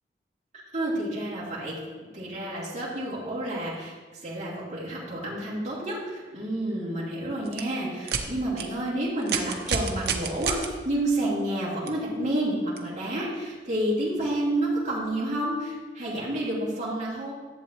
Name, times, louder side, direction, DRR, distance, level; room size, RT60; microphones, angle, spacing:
voice 1, 0.5-1.8 2.1-3.9 4.2-17.3, right 1 dB, 40° right, -8 dB, 2.4 m, -29 dB
sound 1, 7.4-7.6 8.0-8.2 8.6-8.7 9.2-10.7 11.9-12.0 12.8-12.9, right 6 dB, 60° right, 0.7 m, -28 dB
11.0 x 7.4 x 2.9 m, 1.4 s
head